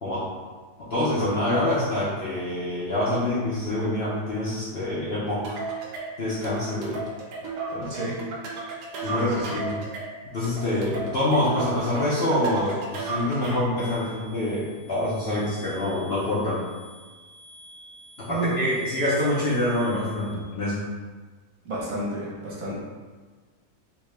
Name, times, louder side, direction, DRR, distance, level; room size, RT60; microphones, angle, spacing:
voice 1, 0.8-5.6 6.2-7.0 7.7-7.9 9.0-9.7 10.3-16.6 18.2-20.8, left 1 dB, 55° left, -8 dB, 0.7 m, -26 dB
sound 1, 5.4-13.8, right 3 dB, 85° right, 1.2 m, -34 dB
voice 2, 7.9-8.2 9.0-9.7 18.3-18.6 21.6-22.7, right 2 dB, 65° right, -5 dB, 1.3 m, -31 dB
sound 2, 13.8-20.3, equal, 80° left, 1.1 m, -49 dB
3.4 x 2.8 x 3.2 m, 1.4 s
omnidirectional pair, 1.7 m